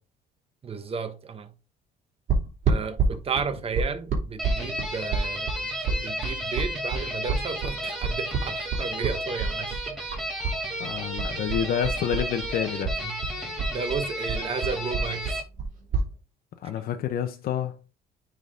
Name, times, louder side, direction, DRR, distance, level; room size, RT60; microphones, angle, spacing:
voice 1, 0.6-1.5 2.6-9.8 13.0-15.4, right 5 dB, 35° right, 1.2 m, -33 dB
sound 1, 2.3-10.6 10.8-12.5 12.8-16.1, right 4 dB, 55° right, 3.0 m, -28 dB
sound 2, 4.4-15.4, equal, ahead, 2.8 m, -33 dB
voice 2, 10.8-12.9 16.6-17.7, left 9 dB, 60° left, 0.9 m, -28 dB
9.3 x 3.8 x 3.7 m
cardioid pair, 110°, 17 cm